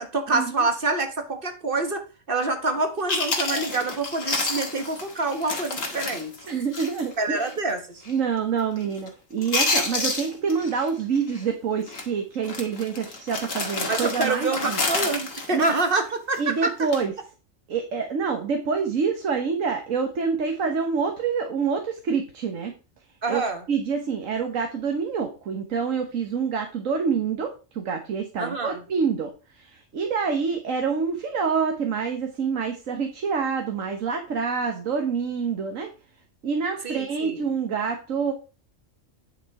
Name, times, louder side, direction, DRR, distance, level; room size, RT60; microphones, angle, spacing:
voice 1, 0.0-6.3 7.2-8.0 13.9-16.7 23.2-23.6 28.4-28.8 36.8-37.4, right 3 dB, 45° right, 6 dB, 1.6 m, -26 dB
Chewing mastication, 2.8-2.9 3.1-7.1 7.4-7.5 8.0-8.3 8.6-9.1 9.4-10.9 11.2-11.4 11.9-12.1 12.4-16.4 16.8-17.1, left 3 dB, 90° left, 2.3 m, -29 dB
voice 2, 6.5-7.5 8.1-14.8 15.5-15.6 16.4-17.1 17.7-22.7 23.3-23.4 23.7-35.9 36.4-38.3, right 6 dB, 85° right, 5 dB, 1.6 m, -27 dB
9.9 x 6.6 x 4.7 m, 0.33 s
omnidirectional pair, 1.3 m